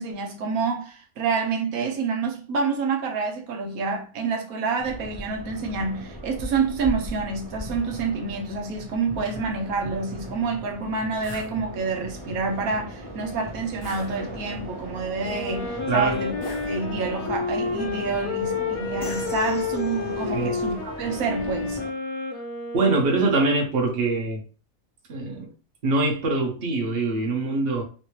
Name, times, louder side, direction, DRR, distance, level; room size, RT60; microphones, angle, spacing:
voice 1, 0.0-16.3 16.6-21.8, right 4 dB, 80° right, 1.1 m, -28 dB
sound 1, 4.8-21.9, equal, 20° right, 0.9 m, -37 dB
sound 2, 11.2-11.5 13.8-14.6 16.4-17.2 19.0-20.1, left 2 dB, 50° left, 0.8 m, -41 dB
Wind instrument woodwind instrument, 15.2-23.6, left 4 dB, 85° left, 1.1 m, -31 dB
voice 2, 15.9-16.2 20.3-20.5 22.7-24.4 25.1-25.5 25.8-27.8, right 3 dB, 50° right, 1.0 m, -23 dB
3.2 x 2.7 x 3.0 m
omnidirectional pair, 1.5 m